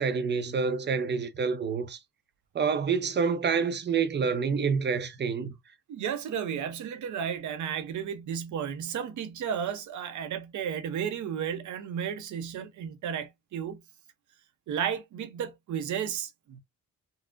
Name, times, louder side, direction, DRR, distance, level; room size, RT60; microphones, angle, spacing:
voice 1, 0.0-2.0 2.5-5.5, right 5 dB, 35° right, 0.6 m, -27 dB
voice 2, 5.9-13.8 14.7-16.6, right 8 dB, 80° right, 0.7 m, -33 dB
3.7 x 2.0 x 2.4 m
cardioid pair, 105°, 29 cm